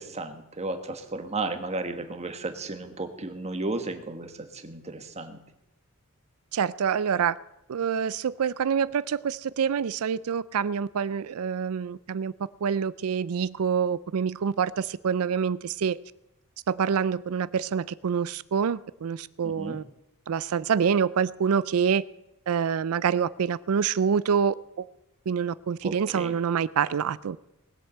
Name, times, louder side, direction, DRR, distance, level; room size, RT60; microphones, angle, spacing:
voice 1, 0.0-5.4 19.4-19.8 25.8-26.3, right 2 dB, 30° right, 7 dB, 1.4 m, -34 dB
voice 2, 6.5-7.4 7.7-12.3 12.6-16.0 16.7-19.8 20.3-22.0 22.5-24.9 25.3-27.4, right 7 dB, 75° right, 18 dB, 0.4 m, -26 dB
19.5 x 8.0 x 7.7 m, 0.89 s
head